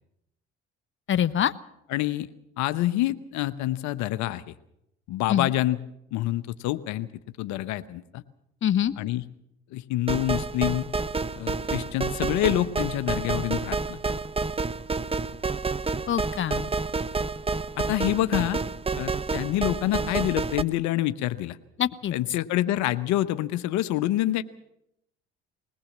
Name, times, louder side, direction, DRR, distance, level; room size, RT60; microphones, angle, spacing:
voice 1, 1.1-1.5 5.3-5.5 8.6-8.9 16.1-16.6 21.8-22.1, left 10 dB, 40° left, 13 dB, 0.9 m, -24 dB
voice 2, 1.9-2.3 2.6-4.5 5.1-5.8 6.1-7.1 7.4-8.2 9.0-9.2 9.7-10.9 11.3-14.0 17.8-18.6 19.0-21.6 22.1-24.4, left 14 dB, 75° left, 13 dB, 1.0 m, -27 dB
sound 1, 10.1-20.6, right 4 dB, 20° right, 0.9 m, -29 dB
21.0 x 18.5 x 7.3 m, 0.80 s
supercardioid pair, 70°, 29 cm